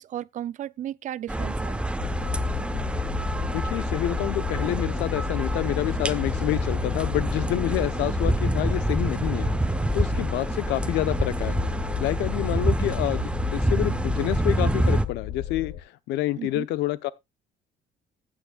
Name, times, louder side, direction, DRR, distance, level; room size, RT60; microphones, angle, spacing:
voice 1, 0.0-1.9 16.4-16.7, right 11 dB, 50° right, 0.4 m, -35 dB
sound 1, 1.3-15.0, right 1 dB, 5° right, 0.7 m, -27 dB
sound 2, 2.0-15.8, left 9 dB, 55° left, 1.0 m, -33 dB
voice 2, 3.5-9.5 9.9-11.6 12.0-17.1, left 15 dB, 85° left, 0.8 m, -28 dB
14.5 x 8.8 x 2.3 m
cardioid pair, 110°, 17 cm